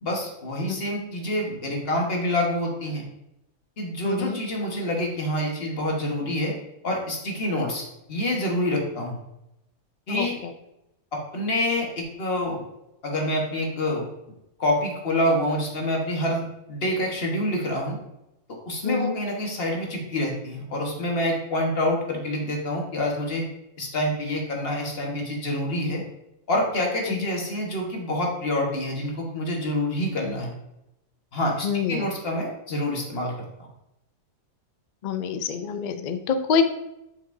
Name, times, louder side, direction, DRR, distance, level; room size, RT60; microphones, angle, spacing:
voice 1, 0.0-3.0 3.8-6.5 6.8-9.2 10.1-10.4 11.1-12.6 13.0-14.1 14.6-18.0 18.5-23.5 23.8-26.0 26.5-30.5 31.3-33.3, left 1 dB, 50° left, -1 dB, 1.5 m, -27 dB
voice 2, 4.0-4.4 10.1-10.3 18.8-19.2 27.1-27.2 31.6-32.1 35.0-36.8, left 6 dB, 75° left, 8 dB, 0.4 m, -26 dB
7.6 x 5.7 x 2.6 m, 0.87 s
omnidirectional pair, 1.4 m